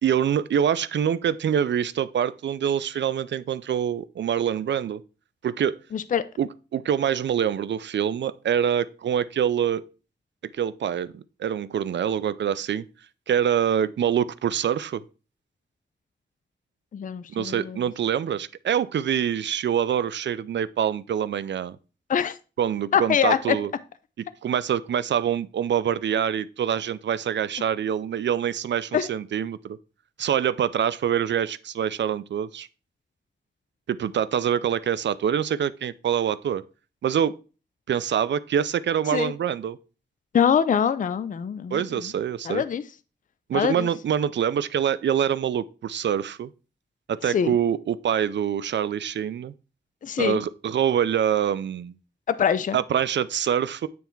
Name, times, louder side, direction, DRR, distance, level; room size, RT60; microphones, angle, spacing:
voice 1, 0.0-5.0 5.4-5.8 6.4-9.8 10.4-12.9 13.3-15.0 17.3-21.8 22.6-23.7 24.2-29.8 30.2-32.7 33.9-36.6 37.0-37.3 37.9-39.8 41.7-42.6 43.5-46.5 47.1-49.5 50.2-51.9 52.7-53.9, right 9 dB, 75° right, 0.4 m, -25 dB
voice 2, 5.9-6.2 16.9-17.8 22.1-22.4 22.9-23.6 28.9-29.1 39.1-39.3 40.3-41.8 42.5-42.8 43.5-43.9 47.3-47.5 50.0-50.4 52.3-52.8, left 8 dB, 45° left, 0.4 m, -23 dB
9.3 x 3.4 x 4.4 m
wide cardioid pair, 135°, 18 cm